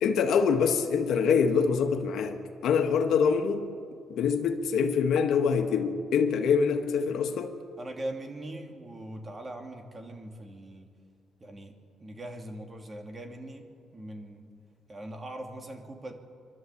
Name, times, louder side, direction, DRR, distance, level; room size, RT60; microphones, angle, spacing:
voice 1, 0.0-3.7 4.1-7.6, left 6 dB, 75° left, 1.6 m, -25 dB
voice 2, 7.8-10.9 11.4-13.7 13.9-14.4 14.9-16.1, right 1 dB, 30° right, 2.9 m, -41 dB
26.5 x 12.5 x 8.5 m
cardioid pair, 90°, 0 cm